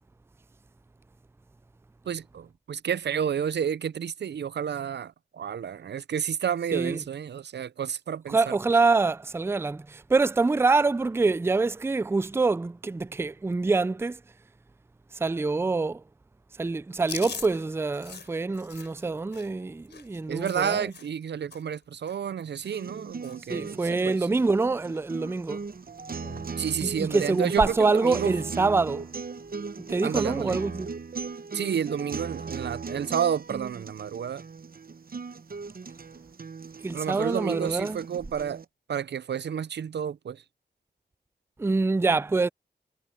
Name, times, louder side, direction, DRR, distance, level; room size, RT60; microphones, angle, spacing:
voice 1, 2.1-8.6 20.3-24.3 26.6-28.3 30.0-30.6 31.5-34.4 36.9-38.6 38.9-40.4, right 8 dB, 80° right, 0.5 m, -30 dB
voice 2, 8.3-14.2 15.1-16.0 16.6-20.9 23.5-25.6 26.8-29.1 29.8-30.9 36.8-38.0 41.6-42.5, right 3 dB, 15° right, 0.3 m, -25 dB
Chewing mastication, 17.0-21.2 21.5-21.8 22.1-23.0 23.2-23.5 23.8-24.5 24.9-25.0 26.1-26.5, left 5 dB, 85° left, 5.0 m, -43 dB
sound 1, 22.6-38.7, right 4 dB, 60° right, 0.9 m, -38 dB
cardioid pair, 40°, 17 cm